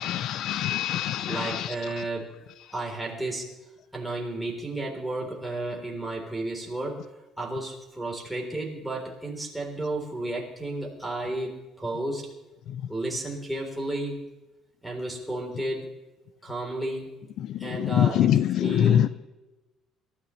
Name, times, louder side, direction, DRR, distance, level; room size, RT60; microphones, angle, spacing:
voice 1, 0.0-1.4 18.0-18.3 18.8-19.1, left 11 dB, 60° left, 15 dB, 0.4 m, -23 dB
voice 2, 1.3-2.4 2.7-3.5 3.9-7.0 7.4-12.3 12.9-14.2 14.8-15.9 16.4-17.1 17.6-19.1, right 2 dB, 5° right, -2 dB, 3.4 m, -32 dB
27.0 x 13.5 x 3.2 m, 1.0 s
cardioid pair, 160°, 0 cm